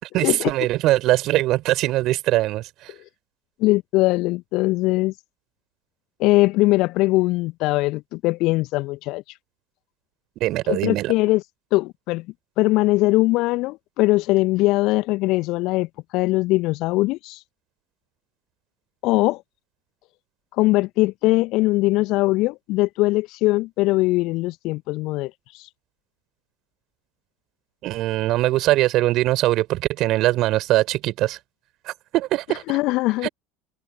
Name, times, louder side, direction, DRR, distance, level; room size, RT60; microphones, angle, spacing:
voice 1, 0.0-2.9 10.4-11.1 27.8-31.4 31.8-32.6 33.2-33.3, right 16 dB, 50° right, 5.1 m, -22 dB
voice 2, 3.6-5.1 6.2-9.2 10.7-11.4 11.7-12.3 12.6-17.4 19.0-19.4 20.5-25.7 32.5-33.3, left 20 dB, 55° left, 1.4 m, -21 dB
figure-of-eight pair, 65°, 0 cm